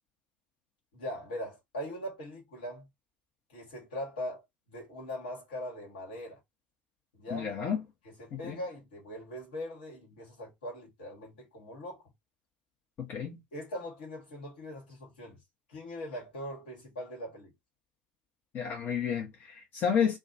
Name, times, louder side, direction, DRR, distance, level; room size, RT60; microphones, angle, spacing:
voice 1, 0.9-2.9 3.5-6.4 7.1-7.5 8.0-12.1 13.5-15.4 15.7-17.5, left 1 dB, 75° left, 1.4 m, -41 dB
voice 2, 7.3-7.8 8.3-8.6 13.0-13.4 18.5-20.2, left 7 dB, 40° left, 0.8 m, -31 dB
2.4 x 2.3 x 2.5 m
figure-of-eight pair, 70°, 5 cm